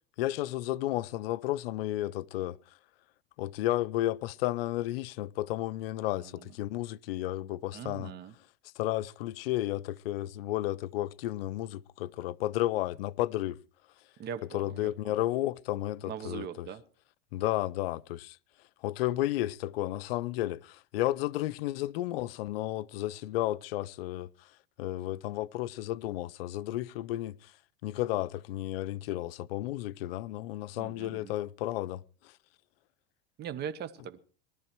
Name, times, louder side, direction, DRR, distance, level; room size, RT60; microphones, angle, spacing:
voice 1, 0.2-2.6 3.4-8.1 8.8-13.6 14.5-16.7 17.3-18.4 18.8-24.5 24.8-27.5 27.8-32.3, left 15 dB, 80° left, 0.7 m, -32 dB
voice 2, 6.2-6.5 7.7-8.3 14.2-15.2 16.0-16.8 30.8-31.3 33.4-34.2, right 8 dB, 35° right, 1.2 m, -41 dB
19.0 x 12.5 x 4.6 m
supercardioid pair, 130°, 29 cm